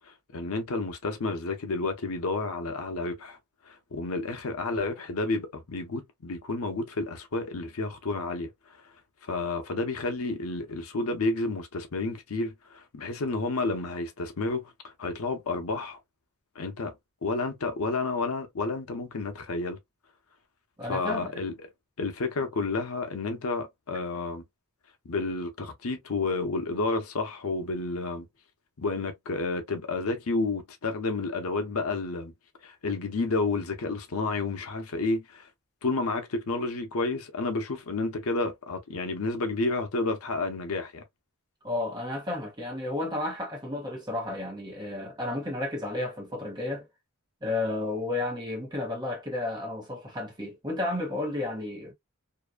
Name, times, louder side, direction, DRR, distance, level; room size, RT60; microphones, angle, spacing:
voice 1, 0.3-3.4 3.7-8.5 9.3-16.0 16.6-16.9 17.2-19.8 20.9-21.5 22.0-24.4 25.1-28.3 28.8-32.3 32.6-35.5 35.8-41.0, left 3 dB, 80° left, 0.7 m, -30 dB
voice 2, 20.8-21.3 41.6-46.9 47.4-51.9, left 2 dB, 20° right, 1.2 m, -32 dB
2.8 x 2.5 x 2.2 m
head